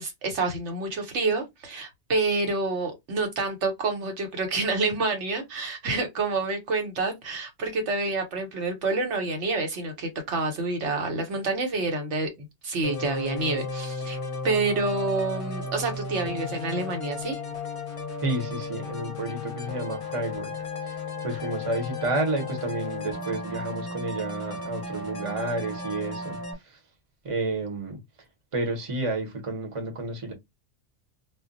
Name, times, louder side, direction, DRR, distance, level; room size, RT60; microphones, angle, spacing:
voice 1, 0.0-12.3 12.6-14.2 14.4-17.4, right 3 dB, 75° right, 1.1 m, -28 dB
sound 1, 12.8-26.5, left 3 dB, 35° left, 0.6 m, -35 dB
voice 2, 18.2-20.5 20.8-26.8 27.2-28.0 28.5-30.3, right 2 dB, 30° right, 0.8 m, -31 dB
2.1 x 2.1 x 3.8 m
omnidirectional pair, 1.2 m